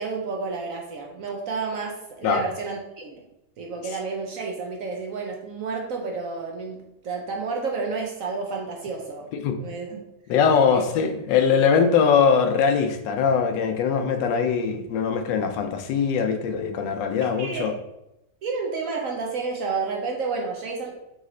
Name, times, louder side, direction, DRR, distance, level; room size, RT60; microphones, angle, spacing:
voice 1, 0.0-3.2 3.6-9.3 9.6-10.0 10.7-10.9 17.2-17.7 18.4-21.0, right 4 dB, 65° right, 1 dB, 0.9 m, -30 dB
voice 2, 10.3-17.7, left 6 dB, 85° left, 7 dB, 1.3 m, -21 dB
4.1 x 3.2 x 3.7 m, 0.88 s
omnidirectional pair, 1.9 m